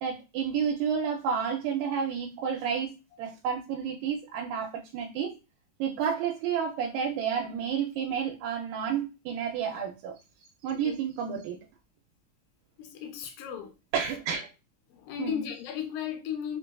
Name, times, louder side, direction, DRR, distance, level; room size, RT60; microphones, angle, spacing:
voice 1, 0.0-2.9 3.2-5.4 5.8-10.2 10.6-11.6 13.9-14.5 15.2-15.4, right 7 dB, 85° right, 2.2 m, -30 dB
voice 2, 12.8-13.7 14.9-16.6, left 8 dB, 85° left, 2.3 m, -35 dB
5.4 x 2.4 x 2.2 m
omnidirectional pair, 3.9 m